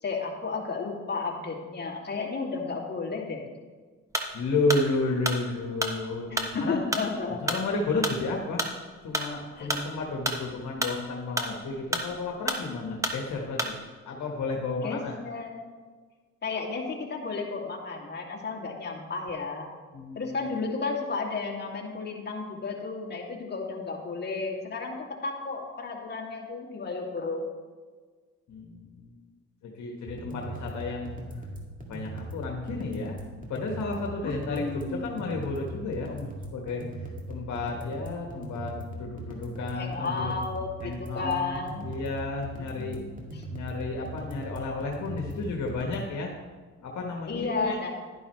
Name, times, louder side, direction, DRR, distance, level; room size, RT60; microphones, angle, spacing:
voice 1, 0.0-3.4 6.3-7.4 9.6-9.8 14.8-15.6 16.4-19.7 20.2-27.4 34.2-35.1 39.7-41.9 42.6-43.4 47.3-47.9, left 4 dB, 35° left, -2 dB, 2.3 m, -33 dB
sound 1, 4.1-13.9, right 1 dB, 10° right, 1.2 m, -32 dB
voice 2, 4.3-6.8 7.4-8.7 9.0-13.7 14.0-15.2 19.9-20.3 28.5-29.1 29.6-31.1 31.9-33.2 33.5-36.8 37.3-40.3 40.8-43.0 43.5-46.3 46.8-47.8, left 3 dB, 70° left, 0 dB, 1.4 m, -32 dB
sound 2, 30.1-46.1, right 1 dB, 25° right, 2.2 m, -39 dB
11.0 x 11.0 x 3.2 m, 1.5 s
cardioid pair, 90°, 30 cm